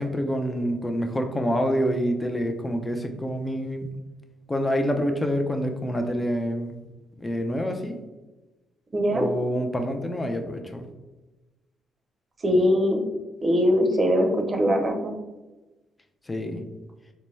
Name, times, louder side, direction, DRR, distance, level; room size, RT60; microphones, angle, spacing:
voice 1, 0.0-3.9 4.5-6.8 7.2-8.0 9.1-10.9 16.3-16.6, equal, 15° left, 5 dB, 0.5 m, -27 dB
voice 2, 8.9-9.3 12.4-13.0 13.4-15.1, equal, 35° right, 3 dB, 0.7 m, -21 dB
4.0 x 2.2 x 3.1 m, 1.1 s
cardioid pair, 90°, 0 cm